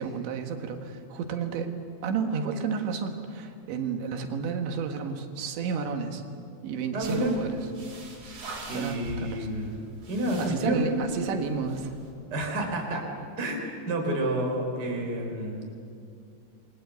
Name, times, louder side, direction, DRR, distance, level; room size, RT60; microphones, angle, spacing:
voice 1, 0.0-1.7 2.0-6.2 6.6-7.6 8.7-9.5 10.4-12.0, right 6 dB, 80° right, 5 dB, 3.9 m, -31 dB
voice 2, 6.9-7.4 8.7-9.7 10.1-10.9 12.3-13.0 13.4-15.6, right 1 dB, 25° right, 1 dB, 3.7 m, -29 dB
sound 1, 7.0-12.1, right 3 dB, 50° right, 5.3 m, -44 dB
28.0 x 21.5 x 8.2 m, 2.5 s
omnidirectional pair, 5.2 m